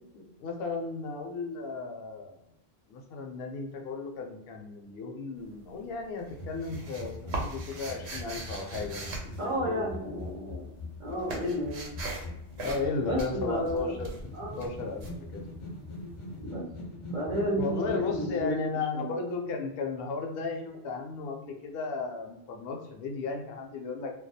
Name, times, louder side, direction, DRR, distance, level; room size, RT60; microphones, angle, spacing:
voice 1, 0.1-2.4 2.9-9.1 9.5-10.2 12.6-14.2 14.6-15.4 17.6-24.1, left 4 dB, 70° left, 3 dB, 0.7 m, -35 dB
sound 1, 5.4-5.9 6.2-10.2 10.5-16.1, right 2 dB, 85° right, 0.9 m, -40 dB
sound 2, 6.3-18.4, left 1 dB, 40° left, 0.4 m, -42 dB
voice 2, 9.4-10.7 11.0-11.9 13.1-13.9 14.3-14.6 16.4-16.6 17.1-18.6 18.9-19.2, equal, 50° right, -7 dB, 0.7 m, -32 dB
2.3 x 2.2 x 2.6 m, 0.84 s
omnidirectional pair, 1.1 m